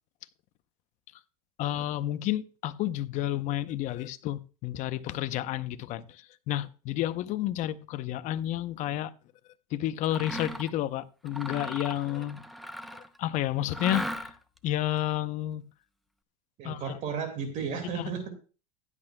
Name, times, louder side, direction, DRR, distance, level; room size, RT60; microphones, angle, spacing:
voice 1, 1.6-9.1 9.7-12.4 13.2-14.3 14.6-15.6 16.6-16.9 17.9-18.1, left 13 dB, 35° left, 0.7 m, -31 dB
Mechanisms, 10.0-10.8 11.3-13.2 13.7-14.6, equal, ahead, 0.6 m, -37 dB
voice 2, 16.6-18.3, right 6 dB, 35° right, 2.1 m, -33 dB
16.0 x 11.0 x 2.2 m
supercardioid pair, 140°, 21 cm